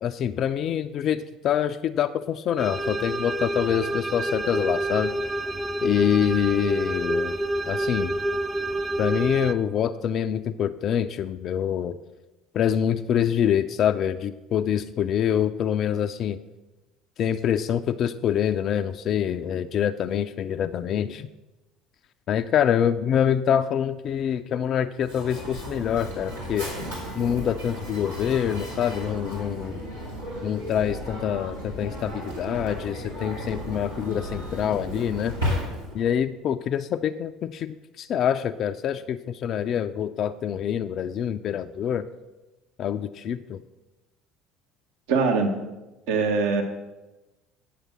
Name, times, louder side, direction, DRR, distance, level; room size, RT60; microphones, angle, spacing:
voice 1, 0.0-5.1 5.8-7.4 7.6-8.2 9.0-12.0 12.5-16.4 17.2-21.3 22.3-26.7 27.1-29.8 30.4-35.3 35.9-42.0 42.8-43.6, left 9 dB, 45° left, 8 dB, 0.3 m, -25 dB
sound 1, 2.6-9.5, right 1 dB, 10° right, 0.5 m, -28 dB
Mechanisms, 25.0-36.1, equal, 90° right, 2.7 m, -34 dB
voice 2, 45.1-45.6 46.1-46.6, right 4 dB, 65° right, 3 dB, 1.0 m, -22 dB
9.2 x 6.5 x 6.1 m, 1.1 s
figure-of-eight pair, 60°, 0 cm